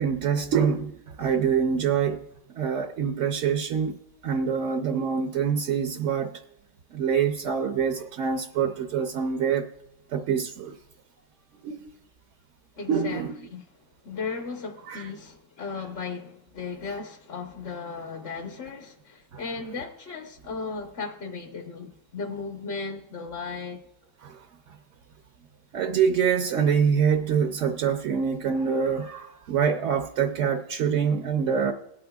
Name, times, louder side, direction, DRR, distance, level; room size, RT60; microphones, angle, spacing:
voice 1, 0.0-2.2 2.5-4.0 4.2-6.3 6.9-9.7 10.1-10.7 11.6-11.9 12.9-13.4 14.9-15.1 19.3-19.4 24.2-24.4 25.7-31.7, right 7 dB, 65° right, 0.8 m, -25 dB
voice 2, 12.8-13.6 14.0-23.8, left 4 dB, 45° left, 0.9 m, -36 dB
22.0 x 8.7 x 2.3 m
omnidirectional pair, 1.9 m